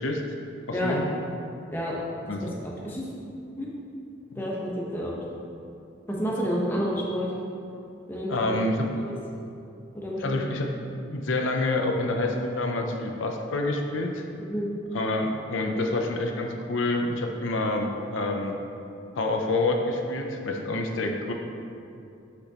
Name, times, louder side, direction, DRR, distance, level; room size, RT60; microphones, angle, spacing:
voice 1, 0.7-1.1 2.3-2.4 4.3-4.4 8.3-8.9 10.2-10.7 11.1-14.3 14.9-18.6 19.2-21.3, left 2 dB, 80° left, 2 dB, 0.6 m, -27 dB
voice 2, 2.6-3.1 3.6-3.7 4.3-5.1 6.1-7.3 8.1-8.3 9.0-9.1 9.9-10.4 14.4-14.7, equal, 10° left, -4 dB, 1.0 m, -29 dB
8.1 x 6.2 x 3.0 m, 2.7 s
head